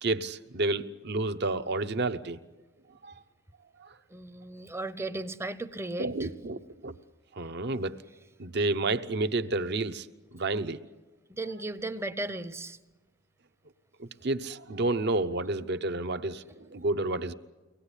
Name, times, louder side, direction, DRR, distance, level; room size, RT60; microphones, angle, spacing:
voice 1, 0.0-2.4 3.0-3.1 3.8-3.9 6.0-6.9 7.3-8.0 8.4-10.1 10.3-10.8 14.0-17.3, right 2 dB, 55° right, 11 dB, 0.8 m, -30 dB
voice 2, 4.1-6.3 11.3-12.8, right 2 dB, 15° right, 13 dB, 0.7 m, -36 dB
24.0 x 18.5 x 9.9 m, 1.3 s
head